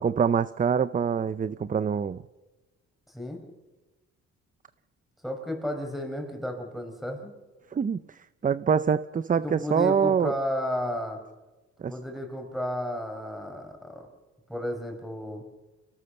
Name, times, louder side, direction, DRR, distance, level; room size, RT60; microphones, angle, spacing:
voice 1, 0.0-2.2 7.7-10.3 11.8-11.9, right 7 dB, 25° right, 15 dB, 0.6 m, -25 dB
voice 2, 3.1-3.4 5.2-7.3 9.4-11.2 11.8-14.1 14.5-15.4, left 1 dB, ahead, 4 dB, 5.2 m, -33 dB
26.0 x 17.5 x 6.7 m, 1.1 s
cardioid pair, 90°, 30 cm